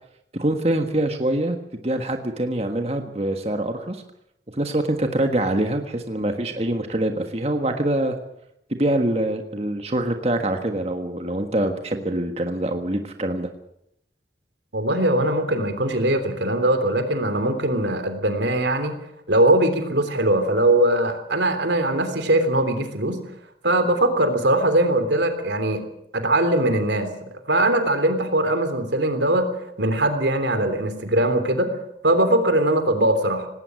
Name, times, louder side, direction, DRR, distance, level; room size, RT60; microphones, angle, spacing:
voice 1, 0.3-1.6 1.8-4.0 4.5-8.2 8.8-13.5, right 1 dB, 35° right, 5 dB, 1.5 m, -24 dB
voice 2, 14.7-18.9 19.3-23.2 23.6-25.8 26.1-27.1 27.5-29.5 29.8-31.7 32.0-33.5, right 1 dB, 85° right, 8 dB, 3.3 m, -21 dB
19.0 x 18.0 x 7.7 m, 0.78 s
head